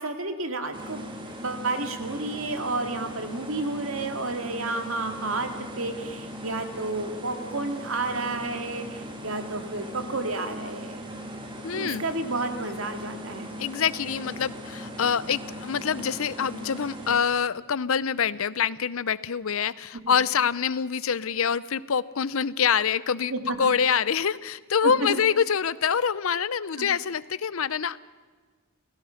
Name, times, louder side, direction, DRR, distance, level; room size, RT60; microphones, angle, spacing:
voice 1, 0.0-5.5 5.8-11.1 11.7-13.5 20.1-20.2 23.3-23.7 24.8-25.2 26.8-26.9, right 2 dB, 65° right, 7 dB, 2.2 m, -31 dB
sound 1, 0.7-17.2, equal, 25° right, 2.6 m, -39 dB
voice 2, 11.6-12.0 13.6-23.3 23.6-28.0, left 7 dB, 70° left, 18 dB, 0.6 m, -25 dB
29.5 x 17.0 x 5.8 m, 1.4 s
head